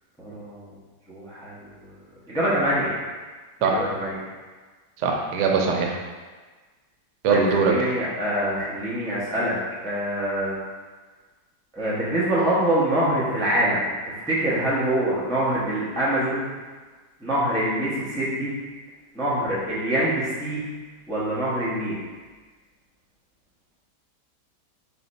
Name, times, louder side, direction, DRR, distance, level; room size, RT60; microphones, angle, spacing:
voice 1, 0.2-0.7 1.1-1.7 2.3-2.9 3.6-4.1 7.3-9.6 9.8-10.6 11.7-16.5 17.2-18.5 19.1-20.6 21.1-21.9, right 1 dB, 5° left, -8 dB, 0.3 m, -25 dB
voice 2, 5.0-5.9 7.2-7.7, right 5 dB, 75° right, 1 dB, 1.2 m, -21 dB
4.0 x 2.5 x 4.0 m, 1.4 s
omnidirectional pair, 1.9 m